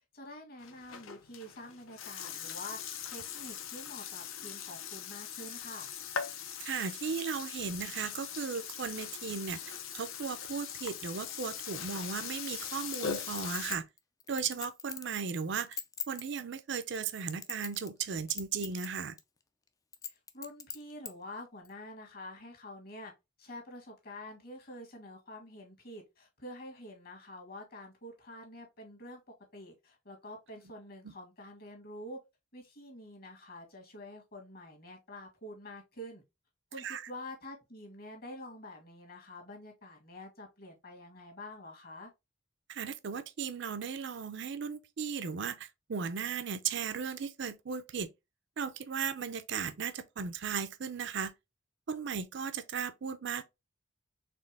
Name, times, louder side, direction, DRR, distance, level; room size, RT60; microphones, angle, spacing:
voice 1, 0.1-2.8 3.1-5.9 20.0-23.1 23.4-29.2 29.5-32.2 32.5-36.2 36.7-42.1, left 1 dB, 45° left, 1.5 m, -47 dB
Burping eructation, 0.6-13.7, left 7 dB, 75° left, 0.7 m, -41 dB
voice 2, 6.6-13.8 14.3-15.8 16.1-19.2 31.0-31.1 36.8-37.0 42.7-48.1 48.6-51.3 51.9-53.4, right 6 dB, 55° right, 0.5 m, -36 dB
Chink clink, 12.9-15.1 15.6-16.2 16.9-18.0 18.3-18.9 19.2-19.3 19.9-21.1 21.6-21.7, left 7 dB, 15° left, 0.3 m, -41 dB
4.3 x 3.3 x 3.3 m
head